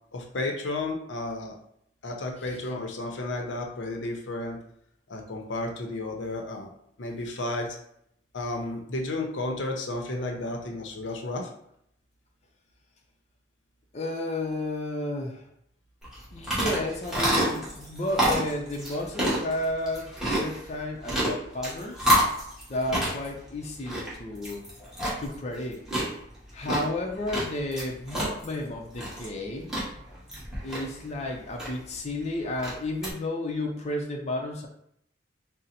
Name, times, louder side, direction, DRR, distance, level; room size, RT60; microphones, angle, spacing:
voice 1, 0.1-1.6 2.0-4.6 5.1-6.7 7.0-7.8 8.3-11.5, left 2 dB, 80° left, 2 dB, 0.7 m, -32 dB
voice 2, 13.9-15.4 16.3-22.2 22.7-24.6 25.2-25.8 26.5-29.7 30.6-34.7, left 1 dB, 35° left, 1 dB, 0.5 m, -32 dB
sound 1, 16.0-33.1, equal, 5° right, 1.2 m, -30 dB
3.9 x 2.1 x 4.2 m, 0.72 s
head